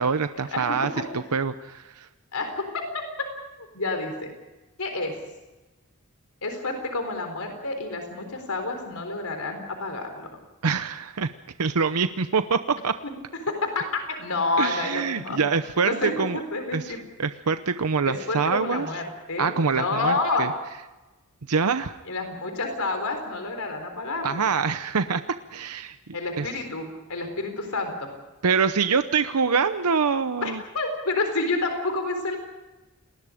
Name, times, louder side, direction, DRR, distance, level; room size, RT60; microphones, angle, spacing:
voice 1, 0.0-2.1 10.6-11.3 11.6-12.9 14.6-16.4 16.7-18.9 19.4-20.5 21.5-22.0 24.2-26.0 26.4-26.5 28.4-30.6, right 5 dB, 90° right, 10 dB, 0.8 m, -25 dB
voice 2, 2.3-2.8 3.2-3.3 3.7-4.3 4.8-5.1 6.4-10.3 13.0-13.1 13.5-15.4 15.8-17.0 18.1-19.0 19.3-20.5 22.1-24.5 26.1-28.1 30.4-32.4, left 3 dB, 80° left, 5 dB, 4.0 m, -29 dB
29.5 x 20.5 x 5.1 m, 1.1 s
head